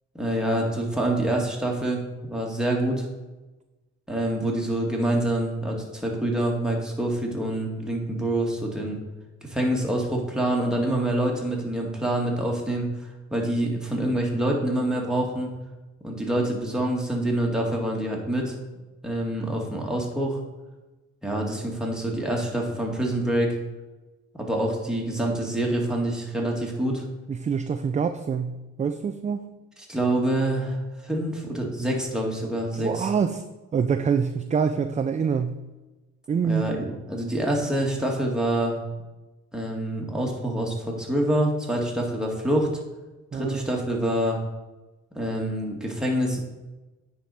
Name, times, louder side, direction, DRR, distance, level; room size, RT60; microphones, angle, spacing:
voice 1, 0.1-3.1 4.1-9.0 9.4-12.9 13.3-15.5 16.0-18.5 19.0-20.4 21.2-23.6 24.4-27.0 29.9-30.8 31.0-33.1 36.4-38.8 39.5-42.7 43.3-44.4 45.1-46.4, right 1 dB, ahead, -2 dB, 2.0 m, -26 dB
voice 2, 27.3-29.5 32.7-33.4 33.7-35.6 36.3-36.6 43.3-43.7, right 6 dB, 25° right, 9 dB, 0.4 m, -25 dB
9.3 x 5.1 x 4.2 m, 1.1 s
cardioid pair, 90°, 30 cm